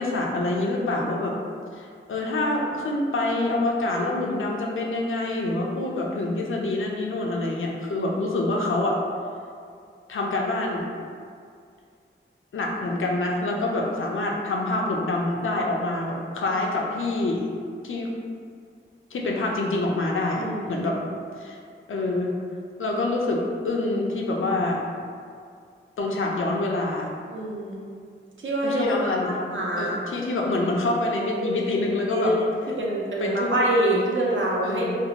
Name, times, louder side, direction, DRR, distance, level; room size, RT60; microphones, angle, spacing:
voice 1, 0.0-1.3 1.8-9.0 10.1-10.8 12.5-17.5 17.8-18.1 19.1-21.0 21.4-21.6 21.9-22.3 22.8-24.8 26.0-27.1 28.6-29.3 29.7-32.3 33.2-33.5 34.6-35.0, left 2 dB, 85° left, -1 dB, 0.4 m, -26 dB
voice 2, 20.4-20.9 27.3-27.8 28.4-30.0 31.4-31.5 32.1-32.4 32.8-35.0, right 1 dB, 75° right, -3 dB, 0.5 m, -26 dB
2.5 x 2.0 x 2.9 m, 2.2 s
wide cardioid pair, 45°, 20 cm